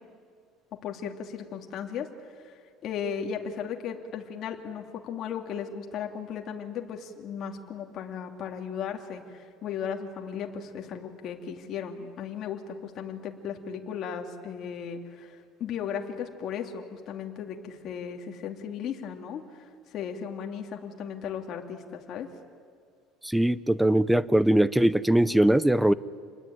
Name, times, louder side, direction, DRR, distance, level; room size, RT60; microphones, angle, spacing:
voice 1, 0.8-2.1 2.4-22.3, left 7 dB, 40° left, 3 dB, 2.7 m, -36 dB
voice 2, 23.2-25.9, right 1 dB, 5° right, 17 dB, 0.6 m, -21 dB
27.5 x 20.5 x 9.4 m, 2.2 s
cardioid pair, 160°, 0 cm